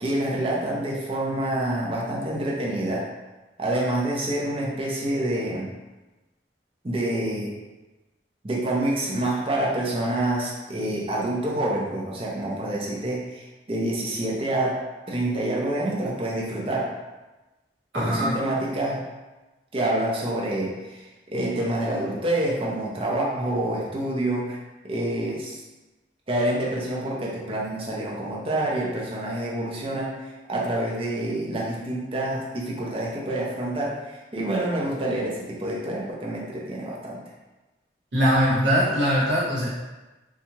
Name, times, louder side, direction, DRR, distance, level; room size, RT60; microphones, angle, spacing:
voice 1, 0.0-3.1 3.6-5.7 6.8-7.5 8.4-14.8 15.1-16.9 17.9-19.0 19.7-24.6 24.9-25.6 26.3-30.1 30.5-37.2, right 1 dB, 30° right, -4 dB, 0.6 m, -27 dB
voice 2, 17.9-18.4 38.1-39.7, equal, 80° right, -7 dB, 1.0 m, -21 dB
2.9 x 2.3 x 2.7 m, 1.1 s
head